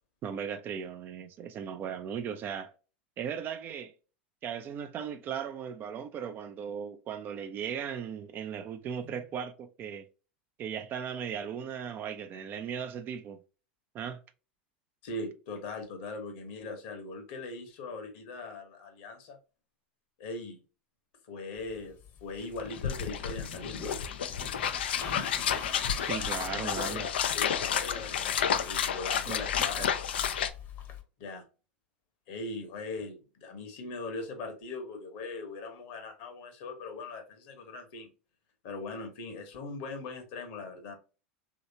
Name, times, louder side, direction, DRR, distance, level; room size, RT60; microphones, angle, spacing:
voice 1, 0.2-2.7 3.2-3.9 4.4-10.1 10.6-13.4 13.9-14.2 26.0-27.0 29.3-29.4 29.8-29.9, right 8 dB, 35° right, 0.4 m, -37 dB
voice 2, 15.0-19.4 20.2-20.6 21.3-21.9 22.2-23.8 26.6-30.3 31.2-31.4 32.3-38.1 38.6-41.0, left 3 dB, 60° left, 1.1 m, -40 dB
sound 1, 21.6-31.0, left 6 dB, 40° left, 0.9 m, -44 dB
sound 2, 22.3-22.4 22.6-30.5, left 8 dB, 75° left, 0.4 m, -31 dB
3.1 x 2.8 x 2.7 m
hypercardioid pair, 90°, 6 cm